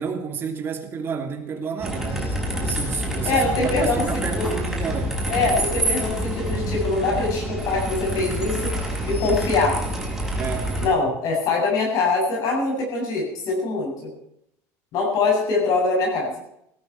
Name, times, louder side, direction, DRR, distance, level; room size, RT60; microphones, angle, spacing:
voice 1, 0.0-5.3 10.4-10.7, right 6 dB, 30° right, 5 dB, 2.9 m, -31 dB
sound 1, 1.8-10.9, right 1 dB, 5° right, 5.8 m, -27 dB
voice 2, 3.3-4.0 4.3-4.5 5.3-8.7 9.1-9.8 10.8-14.1 14.9-16.3, left 3 dB, 55° left, -1 dB, 7.4 m, -23 dB
17.0 x 14.5 x 4.7 m, 0.76 s
cardioid pair, 145°, 7 cm